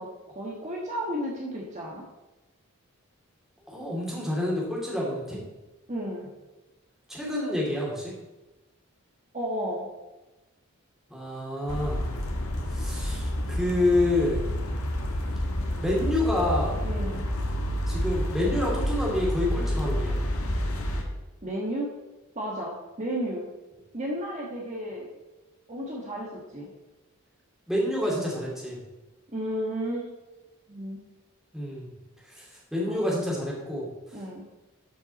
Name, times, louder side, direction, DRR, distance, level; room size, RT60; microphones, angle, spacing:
voice 1, 0.0-2.0 5.9-6.3 9.3-9.9 16.8-17.2 21.4-21.9 22.3-23.5 23.9-25.1 25.7-26.7 29.3-30.1 30.7-31.0 32.9-33.2 34.1-34.4, equal, 35° right, -3 dB, 1.5 m, -33 dB
voice 2, 3.7-5.4 7.1-8.1 11.1-12.0 12.7-14.4 15.8-16.8 17.9-20.1 27.7-28.8 31.5-31.9 32.2-33.9, left 1 dB, ahead, -4 dB, 2.6 m, -28 dB
sound 1, 11.7-21.0, equal, 90° left, 1.5 m, -29 dB
12.5 x 5.8 x 4.2 m, 1.1 s
head